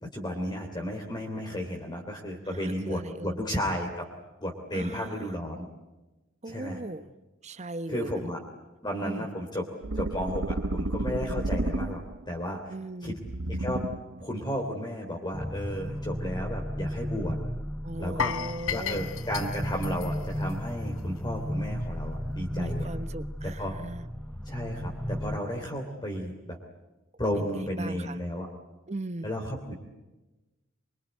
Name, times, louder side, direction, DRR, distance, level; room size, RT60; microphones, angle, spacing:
voice 1, 0.0-4.1 4.4-5.7 6.4-6.8 7.9-8.4 8.8-9.6 9.9-12.0 12.3-12.7 13.0-13.1 13.5-13.8 14.2-17.4 18.0-18.3 18.7-22.9 23.4-23.8 24.4-26.6 27.2-28.5 29.2-29.8, equal, 20° left, 1 dB, 3.2 m, -33 dB
voice 2, 2.5-3.3 4.7-5.4 6.4-7.1 7.4-8.3 9.0-9.3 12.7-13.2 17.8-19.1 22.5-24.1 27.4-28.2 28.9-29.3, right 2 dB, 35° right, 12 dB, 1.2 m, -38 dB
sound 1, 9.8-12.3 13.2-14.2, right 2 dB, 80° right, 1.0 m, -31 dB
sound 2, 15.3-25.4, equal, 5° left, 0.9 m, -34 dB
sound 3, 18.2-21.2 21.5-21.7 22.1-22.2, left 7 dB, 90° left, 1.1 m, -34 dB
24.5 x 24.0 x 9.3 m, 1.1 s
head